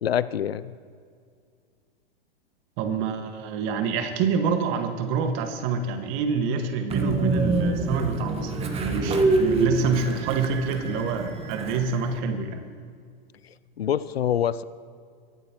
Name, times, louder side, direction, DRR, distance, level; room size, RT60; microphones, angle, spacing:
voice 1, 0.0-0.7 13.8-14.6, left 9 dB, 85° left, 16 dB, 0.6 m, -25 dB
voice 2, 2.8-12.6, right 5 dB, 45° right, 6 dB, 1.7 m, -27 dB
Train, 6.9-12.2, right 2 dB, 20° right, 1.5 m, -26 dB
23.5 x 11.5 x 3.0 m, 2.1 s
hypercardioid pair, 105°, 30 cm